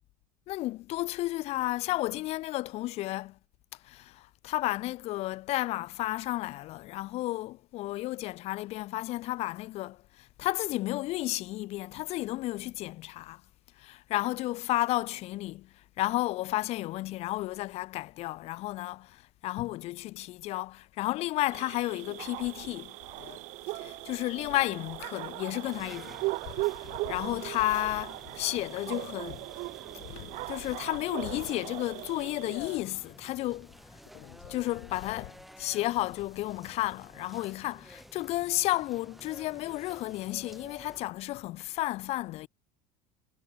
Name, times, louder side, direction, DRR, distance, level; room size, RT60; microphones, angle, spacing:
voice 1, 0.5-3.4 3.8-13.4 13.8-23.0 23.7-29.5 30.1-33.7 34.1-42.5, left 17 dB, 40° left, 7.0 m, -32 dB
sound 1, 21.5-32.8, right 22 dB, 50° right, 7.4 m, -38 dB
sound 2, 22.2-36.7, left 31 dB, 70° left, 7.7 m, -50 dB
sound 3, 25.7-41.1, equal, ahead, 4.3 m, -53 dB
cardioid pair, 180°, 16 cm